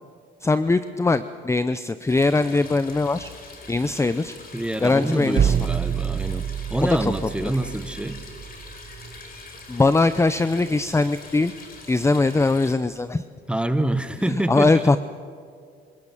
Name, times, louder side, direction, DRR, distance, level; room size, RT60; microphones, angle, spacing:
voice 1, 0.4-3.3 3.7-4.3 4.8-5.5 6.8-7.1 7.4-7.5 9.7-11.5 11.9-13.2 14.3-15.0, left 3 dB, 15° left, 13 dB, 0.6 m, -21 dB
sound 1, 2.1-12.7, left 3 dB, 45° left, 4.5 m, -43 dB
voice 2, 4.5-6.4 6.7-8.2 13.5-14.8, right 1 dB, 5° right, 11 dB, 1.3 m, -26 dB
sound 2, 5.4-9.2, right 8 dB, 45° right, 0.7 m, -27 dB
26.5 x 18.5 x 7.4 m, 2.2 s
cardioid pair, 90°, 20 cm